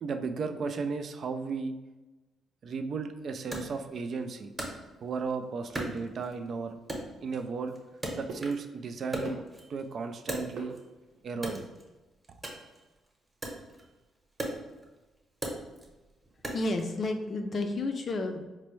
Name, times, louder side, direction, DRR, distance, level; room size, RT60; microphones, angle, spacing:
voice 1, 0.0-1.7 2.6-4.5 5.0-6.8 7.2-7.7 8.1-9.4 9.7-10.7 11.2-11.7, right 4 dB, 55° right, 7 dB, 0.3 m, -34 dB
Wood, 3.5-5.3 5.7-6.5 6.9-8.7 9.0-10.9 11.3-16.9, right 1 dB, 20° right, 0.9 m, -39 dB
sound 1, 6.3-11.4, right 2 dB, 75° right, 0.8 m, -47 dB
voice 2, 16.5-18.5, left 2 dB, 45° left, 6 dB, 0.4 m, -31 dB
4.2 x 2.1 x 3.0 m, 1.1 s
cardioid pair, 90°, 0 cm